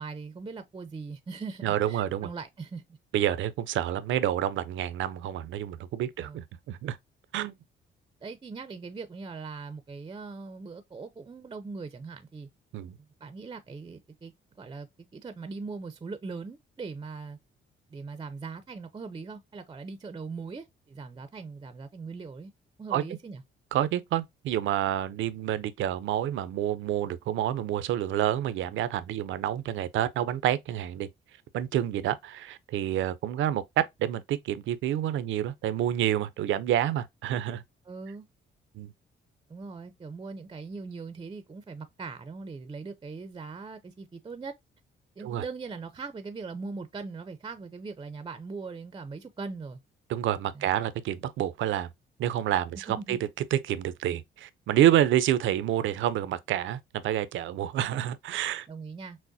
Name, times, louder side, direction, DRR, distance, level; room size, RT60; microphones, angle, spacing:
voice 1, 0.0-3.0 6.2-6.4 8.2-12.5 13.2-14.3 14.6-14.9 15.1-17.4 17.9-22.5 22.8-23.4 37.9-38.3 39.5-44.5 45.2-49.8 50.5-50.7 53.0-53.2 58.7-59.2, right 4 dB, 25° right, 0.5 m, -40 dB
voice 2, 1.6-2.3 3.1-7.0 7.3-7.5 12.7-13.0 22.9-23.0 23.7-31.1 31.5-37.6 38.7-38.9 45.2-45.4 50.1-51.9 52.2-53.2 53.5-58.7, right 11 dB, 75° right, 0.6 m, -28 dB
6.1 x 2.1 x 2.6 m
cardioid pair, 90°, 20 cm